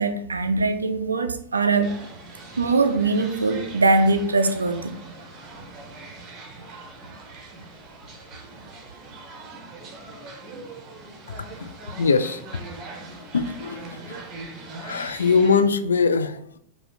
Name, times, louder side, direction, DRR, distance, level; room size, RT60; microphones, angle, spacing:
voice 1, 0.0-1.9 2.6-5.0, right 3 dB, 75° right, 0.4 m, -22 dB
sound 1, 1.8-15.6, right 3 dB, 30° right, 1.0 m, -41 dB
voice 2, 11.6-12.6 13.3-14.2 14.8-16.6, left 5 dB, 70° left, 0.3 m, -22 dB
5.0 x 2.4 x 4.2 m
figure-of-eight pair, 90°, 0 cm